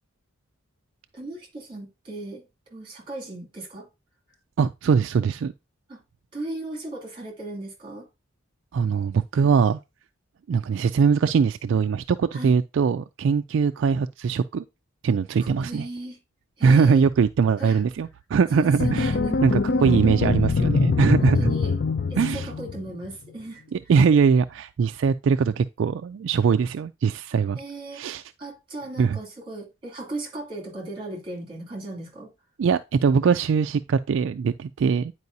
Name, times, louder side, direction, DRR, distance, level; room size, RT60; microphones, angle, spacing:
voice 1, 1.1-2.4 2.7-3.9 5.9-6.0 6.3-8.1 12.3-12.5 15.4-16.2 16.6-17.1 17.6-17.8 18.5-19.4 19.7-19.9 21.2-21.7 22.1-23.6 27.5-28.0 28.4-32.3, right 2 dB, 25° right, 2.6 m, -36 dB
voice 2, 4.6-5.5 8.7-9.8 10.5-14.6 15.0-15.9 16.6-19.1 19.4-21.5 22.2-22.5 23.7-27.6 27.9-28.2 29.0-29.2 32.6-35.1, right 6 dB, 60° right, 0.3 m, -21 dB
sound 1, 18.8-23.1, left 4 dB, 50° left, 0.4 m, -23 dB
9.5 x 4.7 x 2.7 m
head